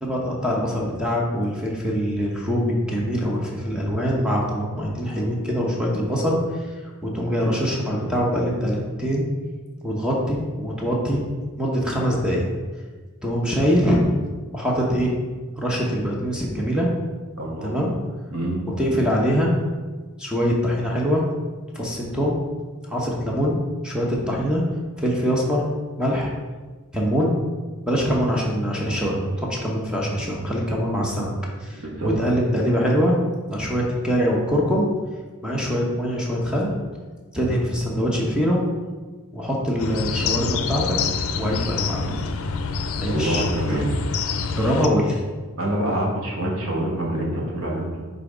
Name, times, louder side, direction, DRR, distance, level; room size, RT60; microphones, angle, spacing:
voice 1, 0.0-9.3 9.8-11.3 11.6-12.4 13.2-14.0 14.5-15.1 15.6-16.9 17.6-17.9 18.8-19.5 20.2-21.2 21.7-22.4 22.9-23.6 23.8-24.6 25.0-25.7 26.0-26.3 26.9-27.3 27.9-31.3 31.6-33.1 33.5-34.9 35.4-36.7 37.3-38.6 39.3-41.0 41.4-42.2 43.0-43.4 44.6-45.2, equal, 5° right, -3 dB, 0.9 m, -23 dB
voice 2, 17.4-17.8 18.3-18.6 31.7-32.1 43.1-44.0 45.6-48.1, right 1 dB, 70° right, -1 dB, 1.4 m, -26 dB
sound 1, 39.8-44.9, left 5 dB, 70° left, 0.5 m, -27 dB
5.7 x 3.9 x 5.0 m, 1.3 s
head